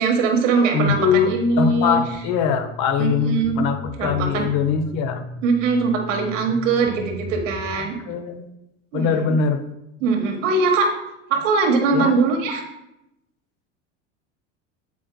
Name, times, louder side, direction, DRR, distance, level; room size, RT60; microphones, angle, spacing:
voice 1, 0.0-2.0 3.0-3.6 4.0-4.5 5.4-8.0 8.9-9.3 10.0-10.9 11.3-12.6, right 4 dB, 85° right, 2 dB, 1.5 m, -21 dB
voice 2, 0.7-5.2 7.8-8.5 8.9-9.6 11.9-12.1, left 6 dB, 60° left, 8 dB, 1.0 m, -22 dB
sound 1, 0.9-7.7, left 1 dB, ahead, 0.6 m, -37 dB
8.4 x 7.9 x 2.3 m, 0.88 s
supercardioid pair, 105°, 37 cm